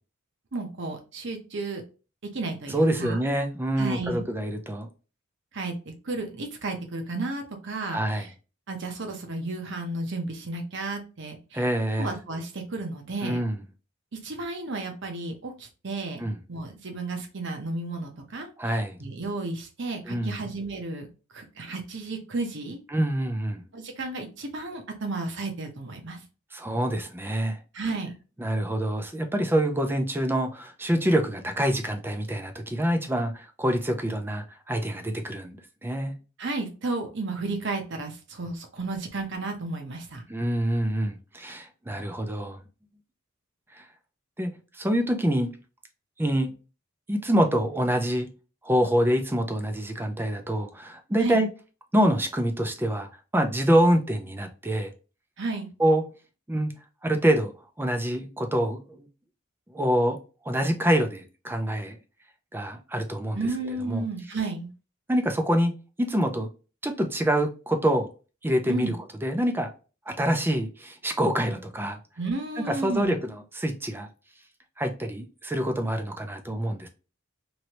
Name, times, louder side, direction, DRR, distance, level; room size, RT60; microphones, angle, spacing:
voice 1, 0.5-1.8 2.3-3.2 3.8-4.2 5.5-5.7 6.0-8.3 8.7-11.6 12.0-13.4 14.1-21.1 21.3-22.8 23.7-26.2 27.7-28.1 36.4-40.2 51.2-51.4 55.4-55.7 63.3-64.7 68.7-68.9 72.2-73.2, right 3 dB, 60° right, 0.8 m, -33 dB
voice 2, 2.7-4.9 7.9-8.3 11.5-12.1 13.2-13.6 16.2-16.4 18.6-19.0 20.1-20.4 22.9-23.6 26.5-27.6 28.4-36.1 40.3-42.6 43.7-43.8 44.4-45.5 46.2-46.5 47.1-48.3 48.6-51.5 51.9-54.9 55.8-56.0 56.5-56.7 57.0-57.5 57.8-59.1 59.7-60.2 60.4-62.0 62.5-63.4 63.9-64.0 65.1-66.5 66.8-68.1 68.4-69.0 69.2-69.7 70.1-72.0 72.7-74.1 74.8-76.9, right 1 dB, 10° right, 0.4 m, -26 dB
3.0 x 2.7 x 2.9 m
head